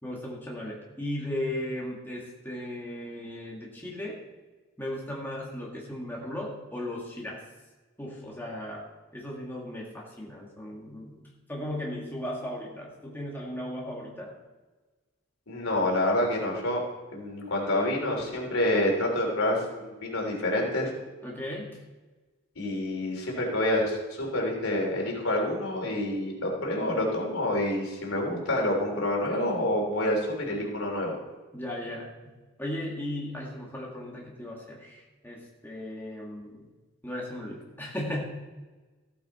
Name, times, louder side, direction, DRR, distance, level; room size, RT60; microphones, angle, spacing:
voice 1, 0.0-4.2 4.8-7.4 8.0-8.9 9.1-14.3 21.2-21.8 31.5-32.1 32.6-36.7 37.0-38.2, left 1 dB, 10° left, -3 dB, 2.1 m, -36 dB
voice 2, 15.5-16.8 17.1-20.9 22.5-31.2, left 1 dB, 90° left, -1 dB, 3.4 m, -27 dB
15.0 x 8.6 x 4.3 m, 1.2 s
head